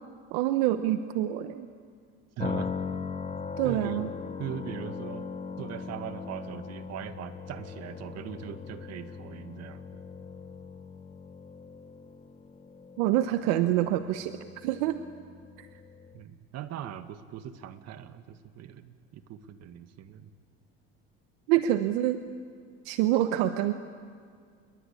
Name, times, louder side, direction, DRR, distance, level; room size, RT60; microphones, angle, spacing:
voice 1, 0.3-1.7 3.6-4.1 13.0-15.0 15.6-15.7 21.5-22.2 22.8-23.7, right 13 dB, 80° right, 9 dB, 1.1 m, -26 dB
sound 1, 2.4-16.2, left 5 dB, 20° left, 1.2 m, -40 dB
voice 2, 2.4-2.7 3.6-4.1 4.4-5.3 5.6-10.0 16.1-20.3, right 10 dB, 55° right, 9 dB, 1.9 m, -40 dB
29.0 x 22.5 x 8.5 m, 2.1 s
supercardioid pair, 95°, 31 cm